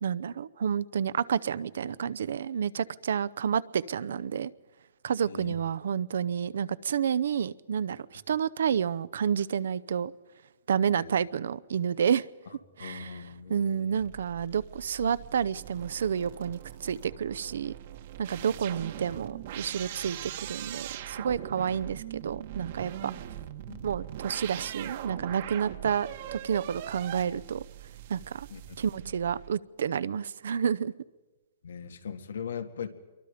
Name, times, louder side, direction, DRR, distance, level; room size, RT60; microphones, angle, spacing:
voice 1, 0.0-4.5 5.0-10.1 10.7-12.3 12.8-17.7 18.2-23.1 23.8-27.6 28.1-28.5 28.8-30.9, right 7 dB, 70° right, 18 dB, 0.7 m, -30 dB
voice 2, 5.2-5.5 10.9-11.0 12.8-14.0 18.4-18.5 23.7-23.8 28.5-28.8 31.6-32.9, left 7 dB, 90° left, 8 dB, 2.0 m, -40 dB
sound 1, 14.0-29.5, right 12 dB, 45° right, 1.2 m, -41 dB
27.5 x 23.5 x 5.1 m, 1.2 s
hypercardioid pair, 165°, 0 cm